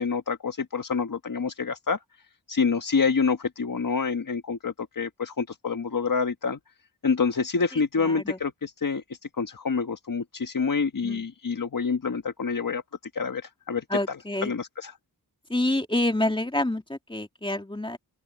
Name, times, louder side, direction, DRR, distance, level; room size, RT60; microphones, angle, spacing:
voice 1, 0.0-2.0 2.5-6.6 7.0-9.0 9.4-12.8 13.1-14.9, left 5 dB, 55° left, 1.5 m, -27 dB
voice 2, 8.0-8.4 11.0-11.2 13.9-14.5 15.5-18.0, left 1 dB, 15° left, 2.4 m, -27 dB
open air
wide cardioid pair, 90°, 39 cm